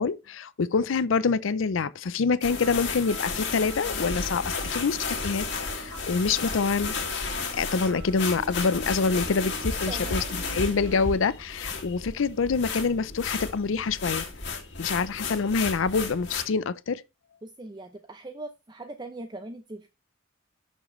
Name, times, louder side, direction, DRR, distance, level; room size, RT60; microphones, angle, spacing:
voice 1, 0.0-5.5 5.8-6.9 7.5-10.2 10.5-14.2 14.8-17.0, left 5 dB, 75° left, 0.5 m, -26 dB
sound 1, 2.4-16.4, left 5 dB, 60° left, 2.3 m, -33 dB
sound 2, 2.5-11.2, right 1 dB, 70° right, 3.7 m, -39 dB
voice 2, 9.9-10.8 17.4-19.9, right 2 dB, 20° right, 0.6 m, -41 dB
11.0 x 6.4 x 3.1 m
head